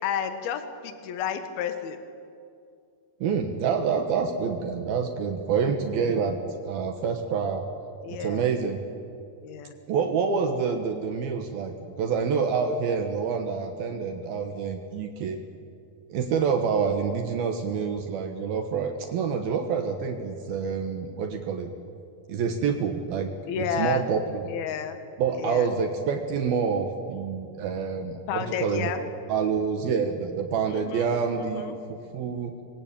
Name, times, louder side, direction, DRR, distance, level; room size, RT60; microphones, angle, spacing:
voice 1, 0.0-2.0 8.0-8.5 9.4-9.8 23.5-24.0 24.5-25.0 25.4-25.7 28.3-29.0 30.7-31.1 31.3-31.8, left 8 dB, 65° left, 8 dB, 3.3 m, -31 dB
voice 2, 3.2-6.4 6.6-7.7 8.1-8.8 9.9-15.4 16.1-21.7 22.3-24.5 25.2-28.9 29.3-32.5, right 6 dB, 65° right, 5 dB, 3.0 m, -27 dB
26.0 x 21.5 x 8.9 m, 2.4 s
omnidirectional pair, 4.9 m